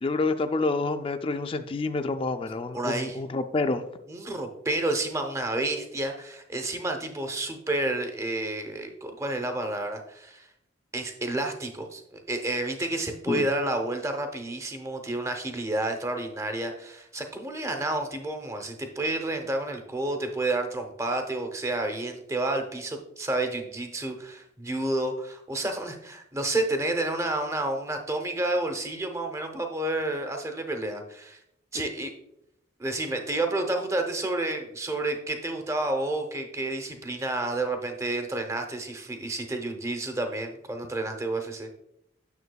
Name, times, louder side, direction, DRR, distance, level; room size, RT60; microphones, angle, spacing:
voice 1, 0.0-3.8 13.3-13.5, left 3 dB, 25° left, 0.3 m, -28 dB
voice 2, 2.7-3.2 4.1-10.5 10.9-31.4 31.7-32.1 32.8-41.7, right 2 dB, 15° right, 0.7 m, -30 dB
9.4 x 6.8 x 2.3 m
head